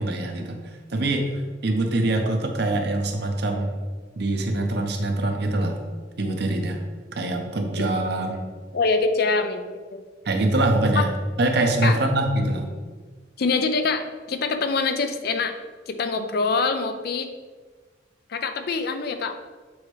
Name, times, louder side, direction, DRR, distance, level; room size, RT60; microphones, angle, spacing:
voice 1, 0.0-3.8 4.2-5.8 6.2-6.8 7.1-8.5 10.2-11.1 11.4-12.7, right 2 dB, 60° right, 4 dB, 0.8 m, -24 dB
voice 2, 8.7-10.0 11.0-11.1 11.8-12.0 13.4-15.6 15.9-17.3 18.3-19.4, left 4 dB, 55° left, 8 dB, 0.5 m, -24 dB
7.2 x 4.2 x 3.2 m, 1.4 s
head